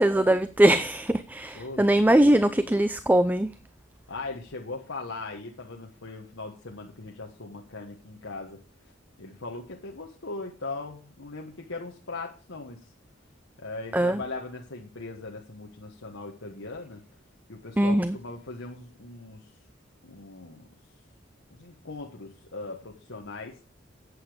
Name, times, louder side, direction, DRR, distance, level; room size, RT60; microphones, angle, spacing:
voice 1, 0.0-3.5 13.9-14.2 17.8-18.2, right 1 dB, 10° right, 0.4 m, -21 dB
voice 2, 1.5-2.3 4.1-8.6 9.2-12.9 13.6-17.0 17.5-19.5 20.0-20.7 21.5-23.6, left 3 dB, 75° left, 1.3 m, -39 dB
11.0 x 8.2 x 5.0 m
head